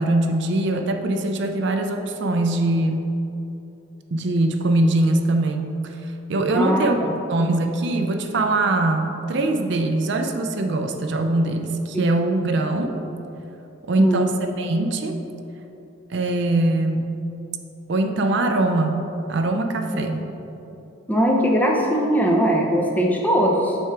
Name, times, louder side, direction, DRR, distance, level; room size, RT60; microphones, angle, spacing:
voice 1, 0.0-3.0 4.1-7.0 7.3-13.0 13.8-15.2 16.1-17.0 17.9-20.2, right 2 dB, 55° right, 5 dB, 0.4 m, -22 dB
voice 2, 6.5-6.9 14.0-14.3 21.1-23.8, equal, 10° left, -1 dB, 0.6 m, -20 dB
7.4 x 3.5 x 4.6 m, 2.9 s
head